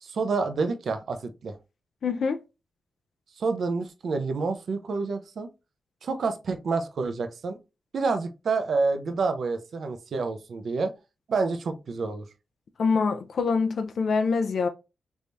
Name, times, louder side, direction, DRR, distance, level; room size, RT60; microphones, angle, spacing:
voice 1, 0.0-1.6 3.4-5.5 6.0-7.6 7.9-10.9 11.3-12.2, right 4 dB, 65° right, 0.6 m, -28 dB
voice 2, 2.0-2.4 12.8-14.7, left 5 dB, 65° left, 0.4 m, -25 dB
3.5 x 3.3 x 2.6 m
cardioid pair, 70°, 0 cm